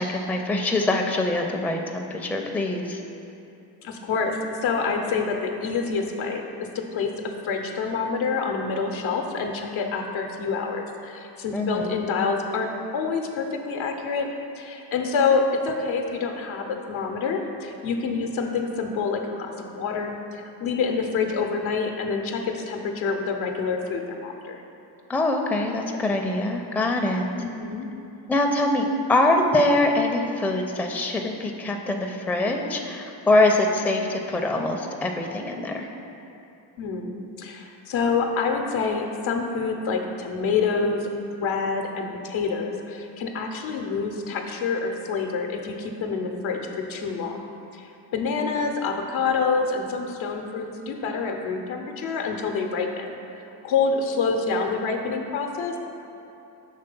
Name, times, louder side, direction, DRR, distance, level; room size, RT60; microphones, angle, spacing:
voice 1, 0.0-3.0 11.5-11.9 25.1-27.3 28.3-35.9, left 2 dB, 5° left, 2 dB, 0.4 m, -24 dB
voice 2, 3.8-14.3 14.6-24.6 27.4-27.9 36.8-41.1 41.4-53.2 53.6-55.8, left 4 dB, 70° left, 3 dB, 0.8 m, -27 dB
5.7 x 3.3 x 5.3 m, 2.9 s
supercardioid pair, 45°, 50 cm